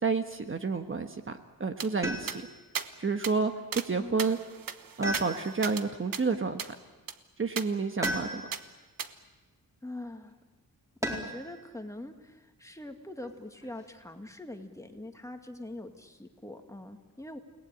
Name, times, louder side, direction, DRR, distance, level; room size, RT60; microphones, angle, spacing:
voice 1, 0.0-2.4 3.0-3.5 3.8-4.4 5.0-6.7 7.4-8.4, right 4 dB, 40° right, 7 dB, 1.3 m, -30 dB
sound 1, 1.8-1.9 2.3-2.4 2.8-2.9 3.2-3.4 3.7-3.9 4.2-5.9 6.1-6.2 6.6-6.7 7.1-7.2 7.6-7.7 8.0-8.2 8.5-8.6 9.0-9.1, right 7 dB, 80° right, 1.3 m, -36 dB
sound 2, 2.0-2.7 5.0-5.8 8.0-8.7 11.0-11.5 13.2-13.9, equal, 10° right, 4.1 m, -35 dB
voice 2, 4.0-4.3 9.8-10.3 11.0-17.4, left 1 dB, 10° left, 4 dB, 2.1 m, -43 dB
29.5 x 19.0 x 9.1 m, 1.2 s
wide cardioid pair, 130°, 33 cm